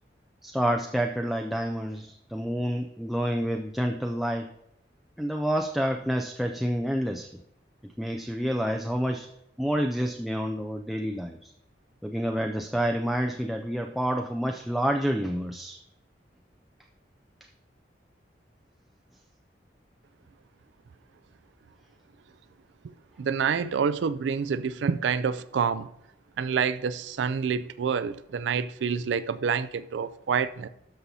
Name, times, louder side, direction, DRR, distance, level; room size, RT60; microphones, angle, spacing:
voice 1, 0.4-4.6 5.2-7.4 7.8-9.3 9.6-11.5 12.0-15.8, equal, ahead, 0.3 m, -28 dB
voice 2, 23.2-25.9 26.4-30.7, right 6 dB, 90° right, 0.4 m, -27 dB
12.5 x 5.5 x 2.7 m
head